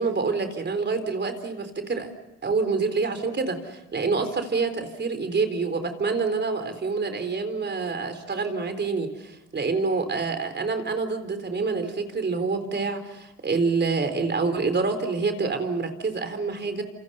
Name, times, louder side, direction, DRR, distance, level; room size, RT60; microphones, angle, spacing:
voice 1, 0.0-2.1 2.4-16.8, right 4 dB, 35° right, 8 dB, 4.1 m, -27 dB
28.5 x 28.0 x 5.7 m, 0.94 s
cardioid pair, 90°, 30 cm